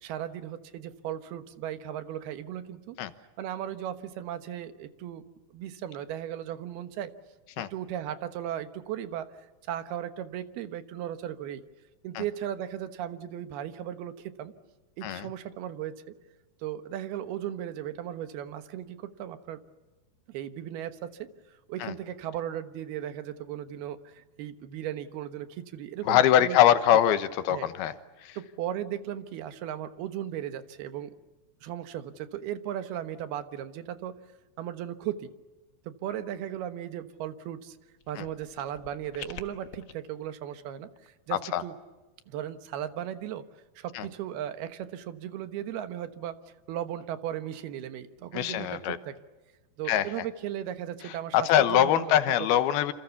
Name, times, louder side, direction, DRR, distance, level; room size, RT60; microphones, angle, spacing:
voice 1, 0.0-3.0 3.4-7.1 7.6-9.3 9.7-11.7 12.0-14.5 15.0-16.1 16.6-19.6 20.3-21.3 21.7-26.6 27.5-27.7 28.4-31.2 31.6-34.2 34.6-35.3 35.9-37.8 38.1-41.7 42.3-43.4 43.8-46.4 46.7-49.1 49.8-52.2, right 11 dB, 85° right, 10 dB, 3.2 m, -36 dB
voice 2, 26.1-27.9 28.2-28.4 38.2-38.3 41.3-41.6 43.9-44.1 48.3-49.0 49.9-50.2 51.3-52.9, left 11 dB, 85° left, 12 dB, 3.1 m, -23 dB
sound 1, 38.0-39.9, left 6 dB, 60° left, 1.2 m, -45 dB
28.0 x 27.5 x 7.1 m, 1.1 s
omnidirectional pair, 4.4 m